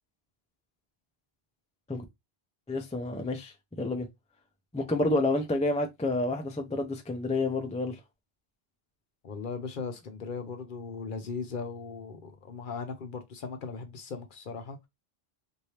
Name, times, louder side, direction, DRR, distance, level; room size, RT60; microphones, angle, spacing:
voice 1, 2.7-3.5 3.8-4.1 4.7-8.0, left 2 dB, 10° left, 0.3 m, -29 dB
voice 2, 9.2-14.8, left 5 dB, 60° left, 0.8 m, -38 dB
3.2 x 2.6 x 2.8 m
omnidirectional pair, 1.0 m